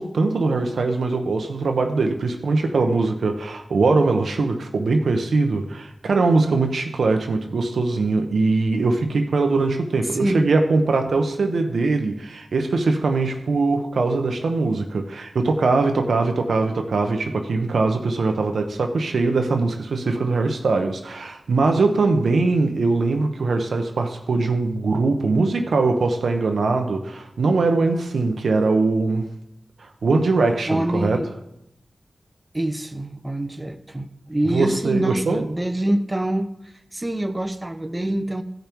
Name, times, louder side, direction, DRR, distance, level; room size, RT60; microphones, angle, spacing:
voice 1, 0.0-29.3 29.8-31.2 34.5-35.4, right 3 dB, 85° right, 5 dB, 0.9 m, -21 dB
voice 2, 10.0-10.5 30.7-31.3 32.5-38.4, right 1 dB, 20° right, 8 dB, 0.8 m, -25 dB
15.5 x 5.3 x 4.6 m, 0.82 s
cardioid pair, 55°, 0 cm